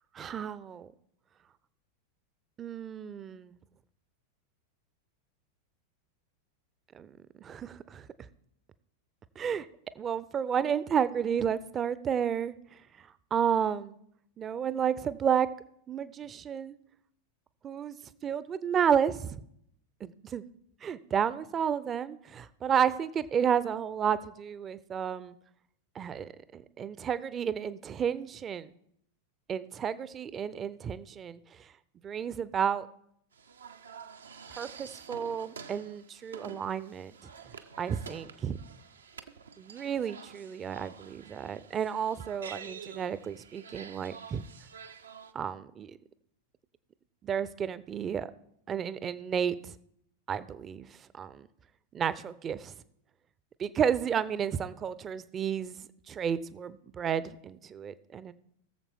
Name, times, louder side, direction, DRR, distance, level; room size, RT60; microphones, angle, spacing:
voice 1, 0.1-0.9 2.6-3.6 6.9-7.1 7.4-8.3 9.4-9.7 10.0-12.5 13.0-14.0 14.4-15.5 15.9-16.8 17.6-17.9 18.2-19.4 20.0-20.4 20.8-25.3 25.9-28.7 29.5-31.4 32.0-32.9 34.6-37.1 37.8-38.6 39.6-44.4 45.3-46.0 47.2-48.3 48.7-49.7 50.3-51.5 51.9-52.7 53.6-55.8 56.1-58.3, right 8 dB, 25° right, 16 dB, 0.5 m, -31 dB
sound 1, 33.3-45.3, right 6 dB, 70° right, 0.6 m, -48 dB
20.5 x 7.2 x 3.6 m, 0.72 s
figure-of-eight pair, 90°, 0 cm